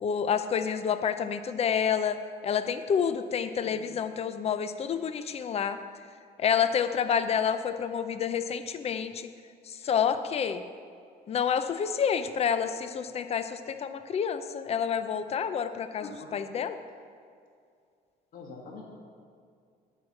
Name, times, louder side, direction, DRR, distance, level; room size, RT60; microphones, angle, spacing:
voice 1, 0.0-5.8 6.4-9.3 9.7-10.6 11.3-16.8, left 7 dB, 40° left, 10 dB, 0.5 m, -29 dB
voice 2, 16.0-16.3 18.3-18.8, left 4 dB, 55° left, -2 dB, 1.7 m, -44 dB
9.2 x 4.8 x 7.3 m, 2.3 s
cardioid pair, 110°, 17 cm